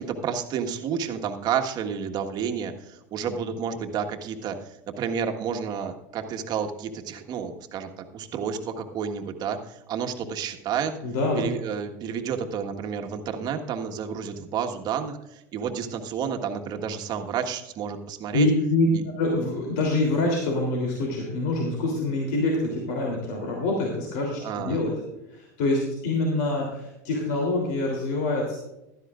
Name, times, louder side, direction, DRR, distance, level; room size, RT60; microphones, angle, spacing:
voice 1, 0.0-10.9 11.3-18.5 24.4-24.8, right 7 dB, 45° right, 4 dB, 1.5 m, -30 dB
voice 2, 11.0-11.5 18.3-24.9 25.3-28.6, left 2 dB, 70° left, -1 dB, 3.3 m, -25 dB
15.5 x 12.5 x 2.5 m, 0.92 s
hypercardioid pair, 100°, 9 cm